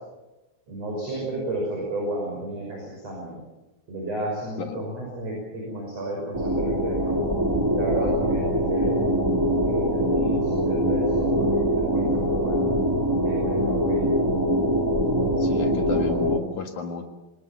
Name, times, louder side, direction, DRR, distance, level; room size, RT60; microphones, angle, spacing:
voice 1, 0.7-3.4 3.9-7.3 7.7-9.0 9.6-12.7 13.2-14.1, right 2 dB, 35° right, -2 dB, 6.9 m, -32 dB
sound 1, 6.3-16.4, equal, 15° right, 0.8 m, -23 dB
voice 2, 15.4-17.1, left 4 dB, 55° left, 5 dB, 2.4 m, -32 dB
26.5 x 19.0 x 7.3 m, 1.0 s
omnidirectional pair, 5.3 m